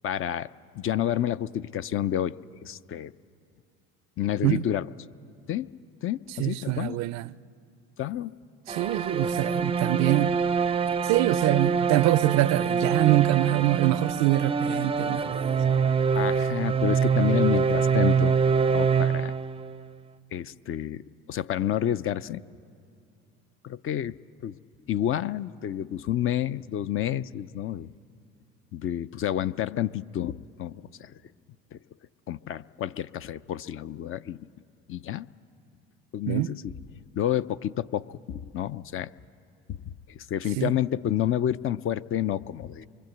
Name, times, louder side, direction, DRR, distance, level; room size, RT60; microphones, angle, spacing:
voice 1, 0.0-3.1 4.2-4.9 5.5-5.7 6.0-7.0 8.0-8.4 16.1-18.4 18.7-19.3 20.3-22.4 23.6-24.2 24.4-24.6 24.9-27.9 28.7-31.2 31.7-31.8 32.3-34.5 34.9-35.3 36.1-36.6 37.2-39.1 39.7-39.8 40.1-42.9, left 11 dB, 45° left, 0.5 m, -29 dB
voice 2, 6.4-7.3 8.7-10.4 11.0-15.8 36.3-36.5 40.6-40.7, right 17 dB, 65° right, 0.5 m, -24 dB
sound 1, 8.7-19.8, right 6 dB, 20° right, 0.5 m, -25 dB
24.0 x 23.5 x 7.9 m
supercardioid pair, 80°, 29 cm